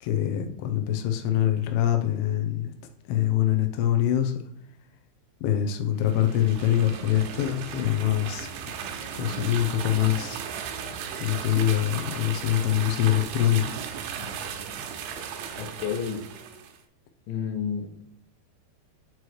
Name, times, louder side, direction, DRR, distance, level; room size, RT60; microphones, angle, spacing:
voice 1, 0.0-2.7 3.1-4.4 5.4-8.5 9.1-10.4 11.2-13.7, left 11 dB, 90° left, 5 dB, 3.1 m, -24 dB
sound 1, 6.0-16.8, right 7 dB, 85° right, 3.1 m, -36 dB
voice 2, 15.6-16.2 17.3-18.0, left 7 dB, 70° left, 3 dB, 2.1 m, -30 dB
8.0 x 3.2 x 4.6 m, 0.74 s
omnidirectional pair, 5.1 m